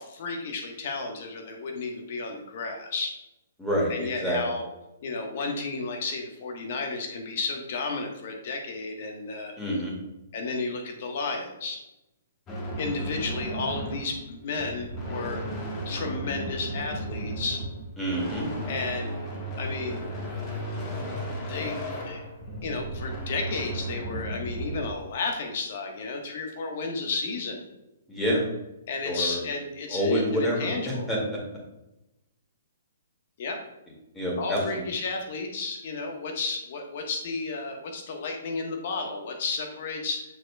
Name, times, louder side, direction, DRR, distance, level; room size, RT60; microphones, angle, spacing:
voice 1, 0.0-3.1 3.9-4.6 5.0-9.5 10.3-11.8 12.8-15.4 15.8-17.6 18.7-19.2 19.6-20.1 21.5-21.8 22.0-22.2 22.6-27.6 28.9-31.1 33.4-33.6 34.4-40.2, left 3 dB, 50° left, 2 dB, 1.2 m, -32 dB
voice 2, 3.6-3.9 4.2-4.4 9.6-9.9 18.0-18.5 28.1-28.5 29.0-29.4 29.9-30.7 31.1-31.2 34.1-34.8, equal, 10° left, -4 dB, 2.1 m, -27 dB
sound 1, 12.5-24.9, right 1 dB, 25° left, 1.4 m, -34 dB
6.9 x 6.4 x 2.3 m, 0.93 s
figure-of-eight pair, 125°, 0 cm